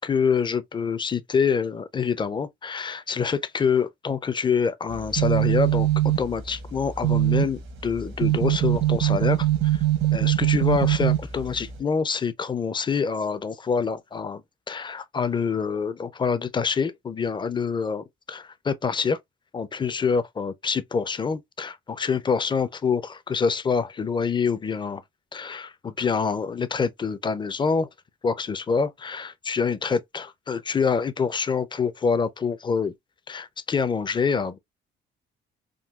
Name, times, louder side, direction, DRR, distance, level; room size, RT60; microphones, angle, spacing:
voice 1, 0.0-9.5 10.1-14.4 14.7-19.2 19.5-25.0 25.3-27.9 28.2-32.9 33.3-34.6, left 5 dB, 25° left, 0.4 m, -26 dB
sound 1, 4.9-11.8, right 13 dB, 80° right, 1.0 m, -23 dB
3.7 x 2.3 x 2.3 m
cardioid pair, 90°, 20 cm